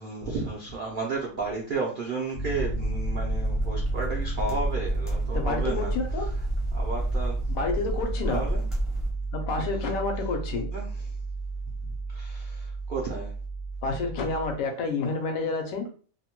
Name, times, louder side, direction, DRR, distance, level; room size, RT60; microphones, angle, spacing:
voice 1, 0.0-5.9 6.7-7.4 8.3-8.7 10.7-10.9 12.1-13.3, right 3 dB, 70° right, -3 dB, 0.4 m, -33 dB
Piano, 2.3-14.5, right 3 dB, 55° left, 0.6 m, -32 dB
sound 1, 2.5-9.1, equal, ahead, 0.4 m, -31 dB
voice 2, 5.3-6.3 7.5-8.5 9.3-10.7 13.8-15.9, left 3 dB, 70° left, 4 dB, 0.9 m, -29 dB
2.6 x 2.1 x 2.9 m, 0.40 s
omnidirectional pair, 1.6 m